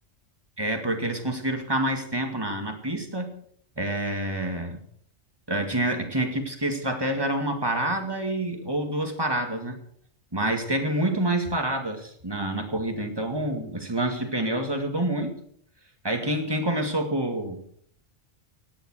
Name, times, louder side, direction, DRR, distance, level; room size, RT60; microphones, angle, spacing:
voice 1, 0.6-3.4 3.8-4.8 5.5-9.8 10.3-15.3 16.0-17.6, right 1 dB, 20° right, 4 dB, 2.1 m, -27 dB
16.5 x 10.5 x 6.3 m, 0.62 s
omnidirectional pair, 1.3 m